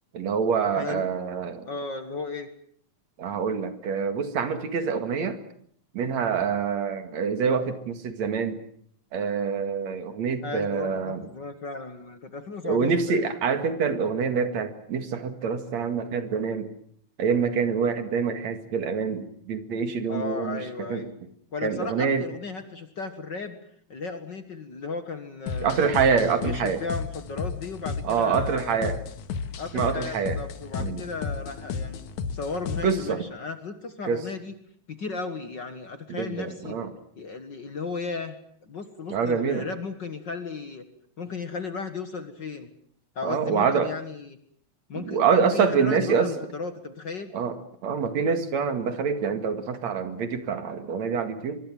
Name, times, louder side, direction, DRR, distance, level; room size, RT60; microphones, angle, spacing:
voice 1, 0.1-1.7 3.2-5.4 5.9-8.6 9.1-11.2 12.6-16.7 17.2-21.1 21.6-22.3 25.6-26.8 28.0-29.0 29.7-30.4 30.7-31.0 32.8-33.2 34.0-34.2 36.1-36.9 39.1-39.7 43.2-43.9 44.9-46.3 47.3-51.6, right 6 dB, 65° right, 8 dB, 3.2 m, -26 dB
voice 2, 1.7-2.5 10.4-13.3 20.1-21.2 21.5-23.6 23.9-25.9 26.4-28.9 29.6-32.0 32.3-34.5 34.9-36.8 37.2-38.4 38.6-40.8 41.2-42.7 43.2-44.4 44.9-47.3, left 4 dB, 45° left, 9 dB, 1.9 m, -35 dB
sound 1, 25.5-33.1, left 5 dB, 80° left, 2.9 m, -33 dB
24.5 x 23.5 x 7.6 m, 0.64 s
omnidirectional pair, 3.3 m